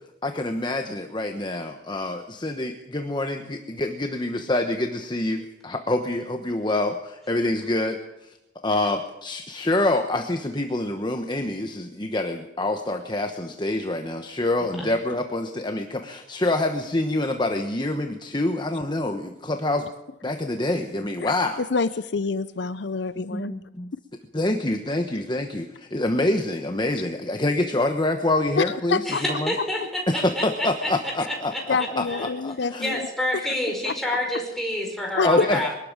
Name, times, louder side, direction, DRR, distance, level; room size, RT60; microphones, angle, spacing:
voice 1, 0.2-8.3 8.6-19.9 20.2-21.6 23.3-23.9 24.3-29.5 30.1-32.0 32.4-32.9 35.2-35.7, left 2 dB, 25° left, 5 dB, 1.1 m, -26 dB
voice 2, 21.2-23.5 28.6-29.4 31.7-33.1 33.3-33.5 33.8-33.9 35.2-35.4, left 4 dB, 65° left, 14 dB, 0.6 m, -26 dB
voice 3, 29.1-29.8 30.1-30.9 31.3-31.6 32.1-32.3 32.8-35.7, left 1 dB, ahead, -1 dB, 5.1 m, -28 dB
22.5 x 12.5 x 8.9 m, 0.91 s
head